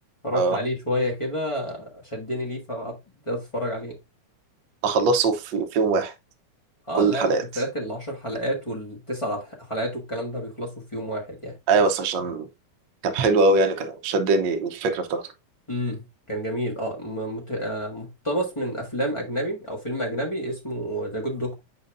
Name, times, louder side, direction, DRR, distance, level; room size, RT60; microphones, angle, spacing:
voice 1, 0.2-3.0 3.2-4.0 6.9-11.6 15.7-21.6, equal, 15° left, 1.1 m, -29 dB
voice 2, 4.8-6.1 6.9-7.4 11.7-12.5 13.0-15.2, right 3 dB, 85° right, 1.0 m, -22 dB
7.9 x 5.3 x 2.5 m
omnidirectional pair, 3.3 m